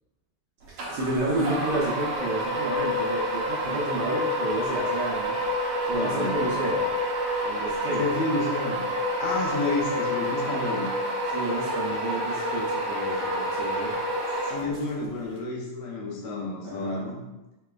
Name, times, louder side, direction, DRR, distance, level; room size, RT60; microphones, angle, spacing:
voice 1, 0.7-5.4 5.9-6.8 7.4-8.0 11.3-13.9 16.6-17.1, right 2 dB, 85° right, -6 dB, 1.4 m, -31 dB
sound 1, 0.8-15.0, equal, 65° right, 1.4 m, -28 dB
voice 2, 5.9-6.4 8.0-8.8 9.2-10.9 14.4-17.2, left 3 dB, 75° left, -3 dB, 1.8 m, -30 dB
4.9 x 2.2 x 2.3 m, 1.1 s
omnidirectional pair, 3.5 m